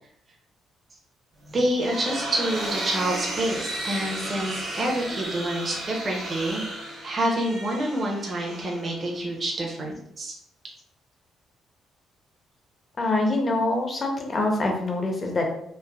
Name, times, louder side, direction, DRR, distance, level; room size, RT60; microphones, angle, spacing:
sound 1, 1.4-9.3, right 1 dB, 75° right, 1.1 m, -34 dB
voice 1, 1.5-6.6 7.0-10.3, right 1 dB, 35° right, -1 dB, 0.6 m, -27 dB
voice 2, 13.0-15.5, left 2 dB, 35° left, 2 dB, 0.7 m, -25 dB
3.2 x 2.0 x 2.3 m, 0.75 s
cardioid pair, 90°, 0 cm